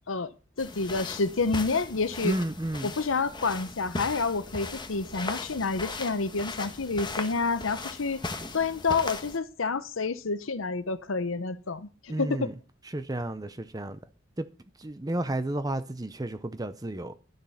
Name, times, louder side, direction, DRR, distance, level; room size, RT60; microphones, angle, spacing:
voice 1, 0.1-2.3 2.8-8.2 8.5-12.5, left 4 dB, 85° left, 0.9 m, -29 dB
sound 1, 0.6-9.4, left 3 dB, 25° left, 1.2 m, -38 dB
voice 2, 2.2-2.9 12.1-12.5 12.9-14.0 14.4-14.5 14.8-17.1, right 1 dB, 20° right, 0.6 m, -32 dB
12.5 x 7.4 x 5.6 m
head